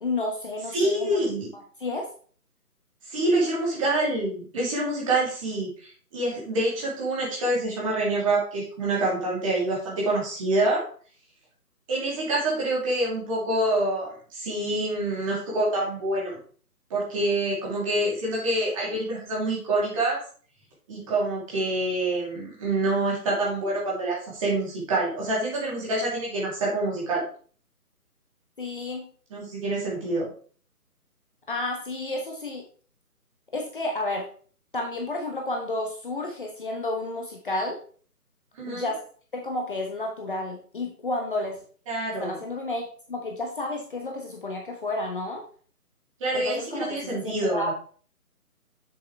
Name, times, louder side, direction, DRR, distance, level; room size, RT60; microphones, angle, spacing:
voice 1, 0.0-1.2 1.5-2.1 28.6-29.1 31.5-32.6 33.5-34.3 34.7-37.8 38.7-39.0 39.3-41.6 42.2-45.4 46.3-47.7, left 2 dB, 35° left, 1 dB, 1.1 m, -31 dB
voice 2, 0.7-1.5 3.1-10.9 11.9-16.4 16.9-20.2 20.9-27.2 29.3-30.3 38.6-38.9 41.9-42.4 46.2-47.7, right 2 dB, 20° right, -5 dB, 2.9 m, -26 dB
7.5 x 7.0 x 3.3 m, 0.43 s
figure-of-eight pair, 155°, 47 cm